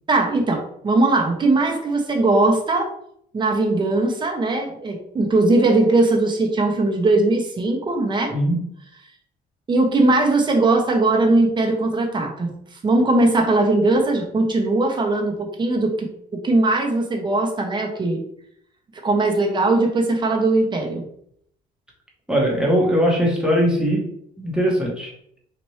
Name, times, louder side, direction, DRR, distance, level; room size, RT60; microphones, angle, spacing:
voice 1, 0.1-2.9 3.3-8.3 9.7-12.5 12.8-18.2 19.0-21.0, right 2 dB, 25° right, 1 dB, 0.9 m, -19 dB
voice 2, 8.3-8.6 22.3-24.1 24.4-25.1, equal, 5° right, -3 dB, 1.1 m, -20 dB
4.2 x 2.5 x 3.1 m, 0.69 s
cardioid pair, 110°, 17 cm